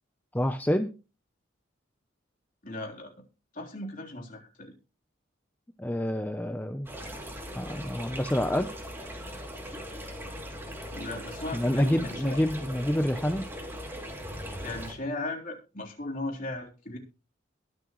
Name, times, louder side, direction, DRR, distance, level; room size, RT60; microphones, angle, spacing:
voice 1, 0.3-0.9 5.8-6.9 7.5-8.7 11.5-13.4, equal, 10° left, 8 dB, 0.6 m, -27 dB
voice 2, 2.6-3.1 3.5-4.7 10.9-12.4 14.6-17.0, left 2 dB, 45° left, 0 dB, 3.6 m, -37 dB
sound 1, 6.9-14.9, equal, 10° right, 2.7 m, -40 dB
22.0 x 7.6 x 3.1 m, 0.32 s
head